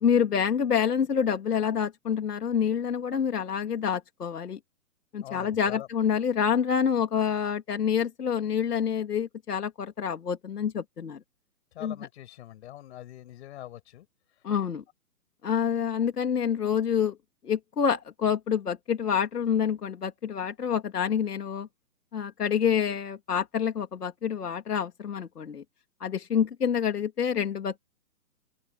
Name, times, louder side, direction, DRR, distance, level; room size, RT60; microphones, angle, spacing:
voice 1, 0.0-4.6 5.1-11.2 11.8-12.0 14.4-14.8 15.4-17.1 17.4-21.7 22.1-25.6 26.0-27.8, left 7 dB, 80° left, 3.1 m, -27 dB
voice 2, 5.2-5.9 11.7-14.1, left 13 dB, 45° left, 7.1 m, -43 dB
open air
hypercardioid pair, 150°, 46 cm